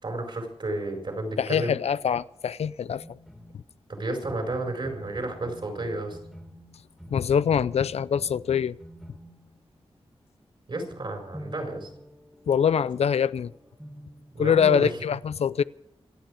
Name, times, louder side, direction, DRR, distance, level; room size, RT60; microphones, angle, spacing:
voice 1, 0.0-1.7 3.9-6.2 10.7-11.9 14.3-14.9, right 2 dB, 55° right, 4.8 m, -32 dB
voice 2, 1.4-3.2 7.1-8.8 12.5-13.5 14.4-15.6, left 7 dB, 85° left, 0.4 m, -24 dB
sound 1, 3.0-3.8 4.3-10.0 11.3-14.5, equal, ahead, 2.4 m, -47 dB
25.5 x 9.0 x 5.0 m
wide cardioid pair, 120°, 10 cm